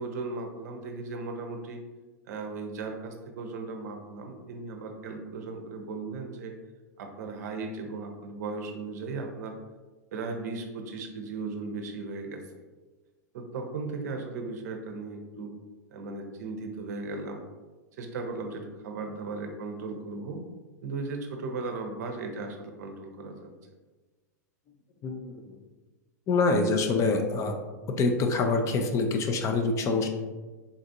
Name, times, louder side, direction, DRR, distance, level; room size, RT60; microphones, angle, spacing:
voice 1, 0.0-1.8 2.3-6.5 7.0-9.5 10.1-12.5 13.3-15.5 15.9-17.4 18.0-20.4 20.8-23.5, right 3 dB, 65° right, 4 dB, 0.6 m, -36 dB
voice 2, 25.0-25.4 26.3-27.5 28.0-30.1, left 3 dB, 30° left, 5 dB, 0.4 m, -25 dB
3.8 x 2.4 x 2.7 m, 1.3 s
hypercardioid pair, 105°, 10 cm